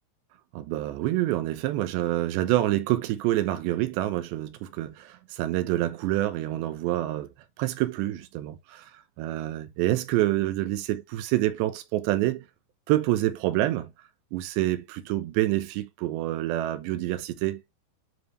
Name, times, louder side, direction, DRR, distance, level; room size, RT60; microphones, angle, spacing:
voice 1, 0.5-7.3 7.6-8.9 9.2-12.5 12.9-13.9 14.3-17.6, right 15 dB, 80° right, 2.6 m, -27 dB
9.9 x 5.1 x 3.1 m
omnidirectional pair, 5.8 m